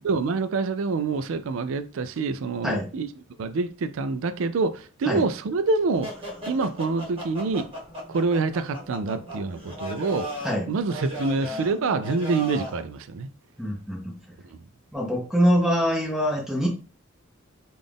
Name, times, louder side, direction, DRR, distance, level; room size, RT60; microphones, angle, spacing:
voice 1, 0.0-3.1 3.4-6.1 6.5-7.7 8.1-10.3 10.7-13.3, right 4 dB, 70° right, 0.4 m, -26 dB
sound 1, 6.0-12.8, equal, 25° right, 1.5 m, -37 dB
voice 2, 13.6-14.1 14.9-16.7, equal, ahead, 1.1 m, -24 dB
3.8 x 2.5 x 3.4 m
head